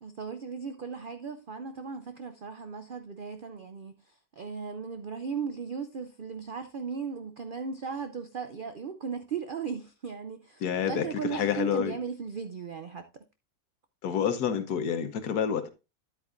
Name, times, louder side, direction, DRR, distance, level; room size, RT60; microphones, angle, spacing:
voice 1, 0.0-3.9 4.4-10.6 10.9-13.0, right 6 dB, 70° right, 0.5 m, -37 dB
voice 2, 10.6-12.0 14.0-15.7, left 8 dB, 75° left, 1.5 m, -28 dB
10.0 x 8.5 x 2.5 m
omnidirectional pair, 1.7 m